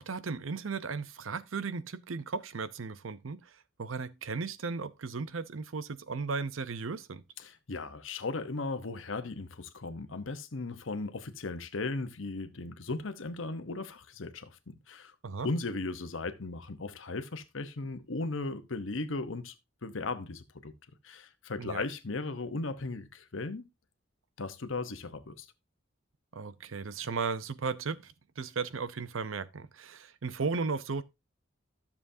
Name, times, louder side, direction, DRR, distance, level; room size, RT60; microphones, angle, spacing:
voice 1, 0.0-3.5 3.8-7.2 15.2-15.5 21.6-21.8 26.3-31.0, right 4 dB, 85° right, 0.7 m, -35 dB
voice 2, 7.4-15.1 15.4-19.5 19.8-20.7 21.0-23.6 24.4-25.5, left 3 dB, 70° left, 1.0 m, -37 dB
12.5 x 7.1 x 2.7 m
head